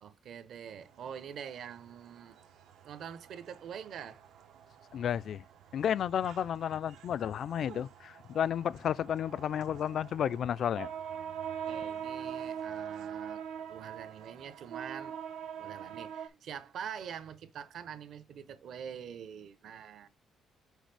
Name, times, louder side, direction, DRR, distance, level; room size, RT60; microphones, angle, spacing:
voice 1, 0.0-2.4 2.8-4.2 11.7-15.2 15.6-20.1, right 8 dB, 55° right, 0.8 m, -45 dB
sound 1, 0.9-16.3, right 8 dB, 85° right, 1.0 m, -44 dB
voice 2, 4.9-5.4 5.7-10.9, left 9 dB, 50° left, 0.3 m, -32 dB
6.4 x 5.2 x 3.3 m
cardioid pair, 170°, 0 cm